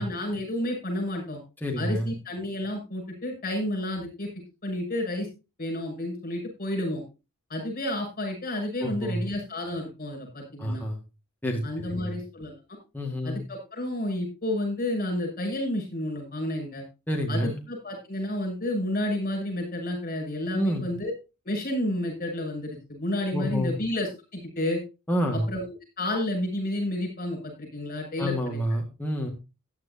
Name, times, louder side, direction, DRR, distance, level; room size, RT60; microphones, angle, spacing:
voice 1, 0.0-1.4 1.8-4.3 4.6-5.3 5.6-7.0 7.5-10.8 11.6-12.8 13.2-16.8 17.3-21.1 21.4-24.8 25.5-25.6 26.0-28.6, left 1 dB, 40° left, 2 dB, 7.1 m, -31 dB
voice 2, 1.6-2.1 8.8-9.2 10.6-11.0 11.4-11.6 11.9-12.2 12.9-13.4 17.1-17.6 20.5-20.9 23.3-23.8 25.1-25.5 28.2-29.3, equal, 10° left, 0 dB, 1.8 m, -28 dB
15.5 x 10.0 x 2.8 m, 0.28 s
head